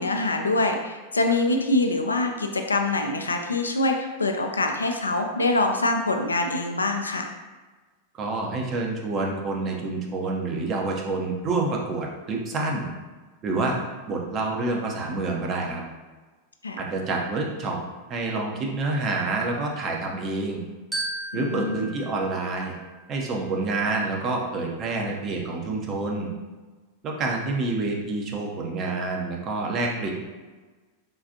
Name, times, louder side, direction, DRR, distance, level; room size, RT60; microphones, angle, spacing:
voice 1, 0.0-7.3 16.6-16.8 21.3-21.8, left 2 dB, 75° left, 4 dB, 0.3 m, -24 dB
voice 2, 8.1-12.9 13.4-13.8 14.1-15.8 16.8-17.8 18.1-20.6 21.3-22.7 23.1-26.3 27.0-30.1, right 3 dB, 30° right, 0 dB, 0.6 m, -28 dB
Glockenspiel, 20.9-23.4, right 2 dB, 5° right, 0.8 m, -36 dB
3.7 x 2.4 x 2.7 m, 1.3 s
figure-of-eight pair, 90°, 0 cm